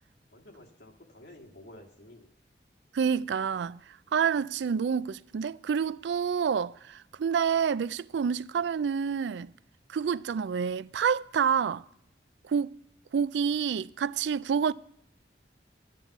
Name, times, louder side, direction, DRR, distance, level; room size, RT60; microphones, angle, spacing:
voice 1, 0.3-2.3, left 1 dB, 85° left, 1.9 m, -51 dB
voice 2, 2.9-3.8 4.1-9.5 9.9-11.8 12.5-12.7 13.1-14.7, right 7 dB, 85° right, 0.4 m, -28 dB
11.0 x 9.2 x 5.9 m
head